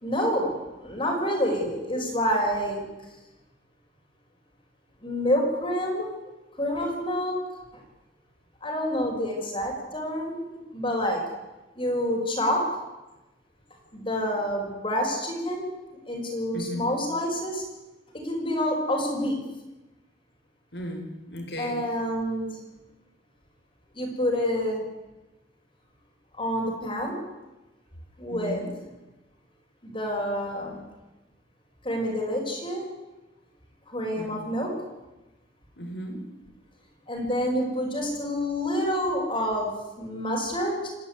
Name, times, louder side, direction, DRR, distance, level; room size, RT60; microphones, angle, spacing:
voice 1, 0.0-2.8 5.0-6.1 6.6-7.4 8.6-10.4 10.7-11.2 11.8-12.6 13.9-15.7 16.1-17.6 18.2-19.4 21.6-22.6 23.9-24.9 26.3-27.2 28.2-28.6 29.8-30.8 31.8-32.9 33.9-34.7 37.1-39.7 40.0-40.9, equal, 30° left, -1 dB, 5.2 m, -27 dB
voice 2, 16.5-16.9 20.7-21.8 28.3-28.7 34.1-34.4 35.8-36.2, equal, 70° left, 4 dB, 5.1 m, -35 dB
28.0 x 11.5 x 9.6 m, 1.1 s
head